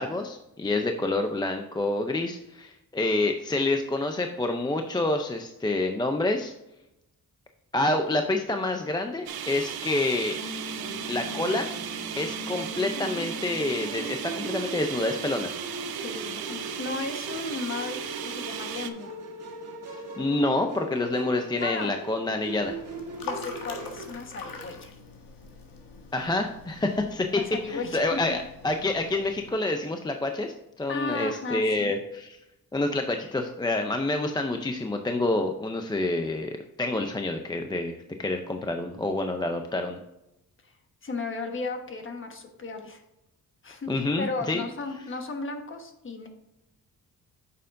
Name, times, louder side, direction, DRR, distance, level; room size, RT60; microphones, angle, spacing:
voice 1, 0.0-6.5 7.7-10.3 11.1-11.7 12.2-15.5 20.2-22.8 26.1-27.4 27.7-28.4 28.6-32.4 32.7-40.0 43.9-44.6, left 2 dB, 10° left, 5 dB, 0.5 m, -28 dB
sound 1, 9.3-18.9, right 9 dB, 90° right, 0.8 m, -36 dB
Musical instrument, 10.3-24.1, right 1 dB, 45° right, 2.1 m, -39 dB
voice 2, 16.0-18.0 18.2-19.2 21.6-21.9 23.2-24.9 27.4-28.2 30.9-31.9 40.6-40.7 41.0-43.0 43.6-46.3, left 3 dB, 35° left, 5 dB, 1.3 m, -35 dB
sound 2, 22.5-29.6, left 4 dB, 70° left, 1.6 m, -44 dB
8.9 x 6.8 x 2.6 m, 0.88 s
wide cardioid pair, 145°, 35 cm